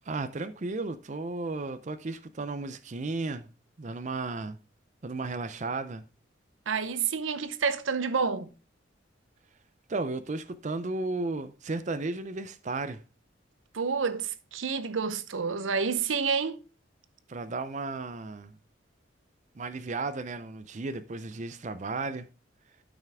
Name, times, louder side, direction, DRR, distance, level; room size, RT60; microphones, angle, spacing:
voice 1, 0.1-3.5 3.8-4.6 5.0-6.0 9.9-13.0 17.3-18.6 19.6-22.3, right 3 dB, 40° right, 0.5 m, -34 dB
voice 2, 6.7-8.5 13.7-16.6, right 5 dB, 85° right, 0.8 m, -29 dB
12.5 x 5.8 x 3.5 m
head